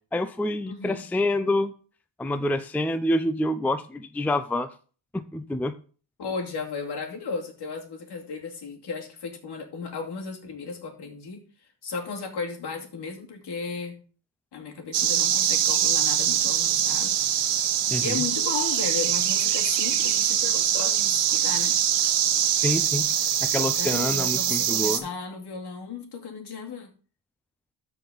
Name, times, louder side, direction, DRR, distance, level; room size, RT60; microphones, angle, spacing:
voice 1, 0.1-1.7 2.2-4.7 5.1-5.7 17.9-18.2 22.5-23.1 23.4-25.0, left 1 dB, 5° left, 11 dB, 0.5 m, -27 dB
voice 2, 0.7-1.1 6.2-11.4 11.8-14.0 14.5-17.5 18.0-21.8 23.6-26.9, left 5 dB, 60° left, 1 dB, 2.6 m, -35 dB
sound 1, 14.9-25.0, right 10 dB, 65° right, 1.1 m, -23 dB
13.0 x 4.9 x 4.0 m, 0.39 s
cardioid pair, 100°, 45 cm